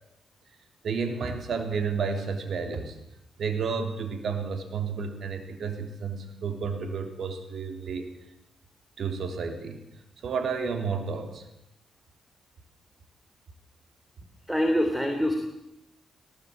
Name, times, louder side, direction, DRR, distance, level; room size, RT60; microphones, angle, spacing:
voice 1, 0.8-3.0 3.4-8.1 9.0-9.8 10.2-11.4, right 5 dB, 65° right, 6 dB, 3.5 m, -31 dB
voice 2, 14.5-15.4, equal, 5° right, 4 dB, 3.2 m, -24 dB
18.5 x 18.5 x 8.7 m, 0.86 s
cardioid pair, 85°, 0 cm